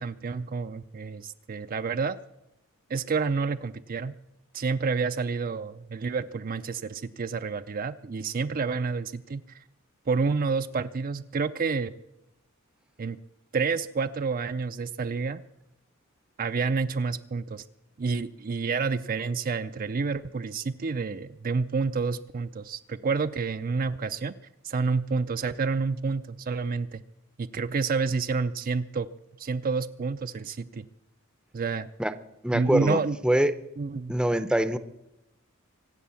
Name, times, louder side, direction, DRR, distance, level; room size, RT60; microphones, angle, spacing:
voice 1, 0.0-2.2 2.9-4.1 4.5-9.6 10.1-11.9 13.0-13.2 13.5-15.4 16.4-17.6 18.0-24.3 24.6-27.0 27.4-29.1 29.4-30.9 31.5-31.9 32.5-33.2 33.8-34.1, right 4 dB, 40° right, 10 dB, 0.5 m, -29 dB
voice 2, 32.4-33.5 34.1-34.8, right 1 dB, 5° right, 11 dB, 0.7 m, -24 dB
24.5 x 8.3 x 7.0 m, 0.91 s
head